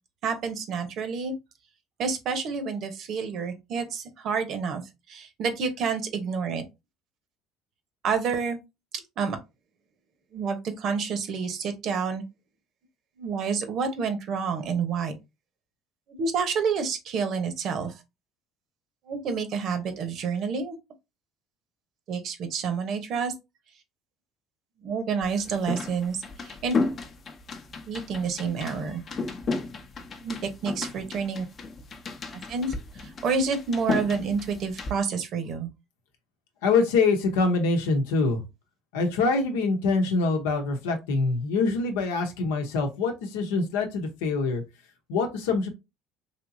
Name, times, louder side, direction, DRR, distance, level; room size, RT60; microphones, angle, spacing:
voice 1, 0.2-1.3 2.0-6.6 8.0-8.6 9.2-9.4 10.3-12.2 13.2-15.1 16.1-17.9 19.1-20.8 22.1-23.3 24.8-26.8 27.9-29.0 30.2-31.5 32.3-35.7, right 5 dB, 55° right, 0.9 m, -29 dB
sound 1, 25.2-34.9, left 4 dB, 40° left, 0.7 m, -33 dB
voice 2, 36.6-38.4 38.9-44.6 45.1-45.7, left 4 dB, 85° left, 0.8 m, -24 dB
3.5 x 2.9 x 2.6 m
supercardioid pair, 90°, 0 cm